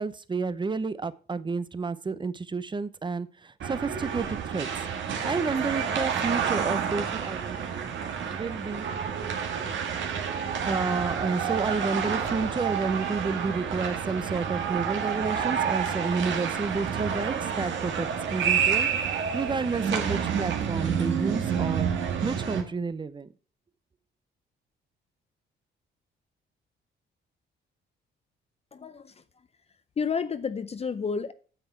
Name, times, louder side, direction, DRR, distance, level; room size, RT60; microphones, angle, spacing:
voice 1, 0.0-4.9 5.2-7.9 8.3-8.9 10.7-21.9 22.2-23.3, right 4 dB, 25° right, 0.7 m, -30 dB
sound 1, 3.6-22.6, right 7 dB, 70° right, 1.8 m, -29 dB
voice 2, 28.7-29.1 30.0-31.3, left 5 dB, 30° left, 0.6 m, -30 dB
9.0 x 7.2 x 4.5 m
cardioid pair, 90°, 20 cm